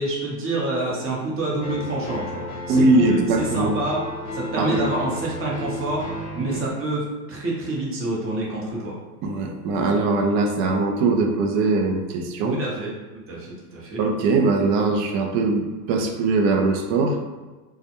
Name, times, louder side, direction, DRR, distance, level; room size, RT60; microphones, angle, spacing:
voice 1, 0.0-4.0 4.3-6.1 6.3-9.0 12.4-12.9 13.3-14.0, right 2 dB, 25° right, -4 dB, 0.9 m, -27 dB
sound 1, 1.6-6.7, left 2 dB, 35° left, 0.5 m, -33 dB
voice 2, 2.7-3.7 4.6-5.0 9.2-12.6 14.0-17.2, right 3 dB, 45° right, 3 dB, 0.5 m, -21 dB
2.3 x 2.1 x 2.8 m, 1.3 s
hypercardioid pair, 100°, 49 cm